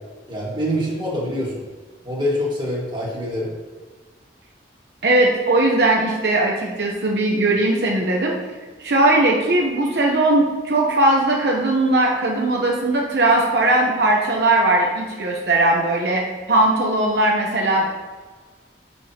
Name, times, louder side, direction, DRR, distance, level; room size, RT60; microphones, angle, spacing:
voice 1, 0.3-1.6 2.0-3.5, equal, 25° right, -5 dB, 1.6 m, -25 dB
voice 2, 5.0-8.4 8.8-17.9, right 2 dB, 70° right, -1 dB, 0.8 m, -19 dB
6.7 x 5.6 x 2.8 m, 1.4 s
head